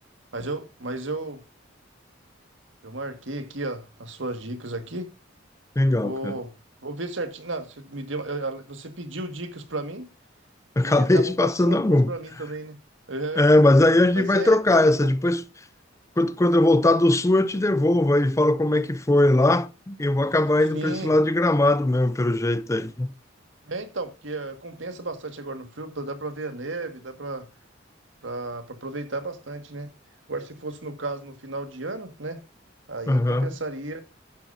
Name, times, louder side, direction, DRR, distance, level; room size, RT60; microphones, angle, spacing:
voice 1, 0.3-1.4 2.8-5.1 5.8-6.5 6.8-10.1 10.8-12.8 13.1-13.5 14.2-15.1 20.7-21.1 23.7-27.5 28.2-29.9 30.3-32.4 32.9-34.0, right 2 dB, 75° right, 1.8 m, -33 dB
voice 2, 5.8-6.4 10.8-12.1 13.4-15.4 16.2-23.1 33.1-33.5, left 1 dB, 15° left, 0.4 m, -20 dB
12.0 x 9.0 x 2.7 m
head